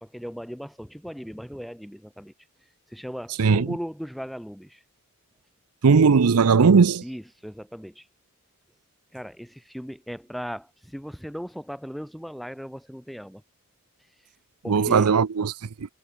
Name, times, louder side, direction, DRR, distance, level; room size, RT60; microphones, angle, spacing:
voice 1, 0.0-2.3 2.9-4.8 7.0-8.1 9.1-13.4 14.6-15.1, equal, ahead, 1.1 m, -37 dB
voice 2, 5.8-7.0 14.7-15.5, right 5 dB, 90° right, 0.6 m, -18 dB
head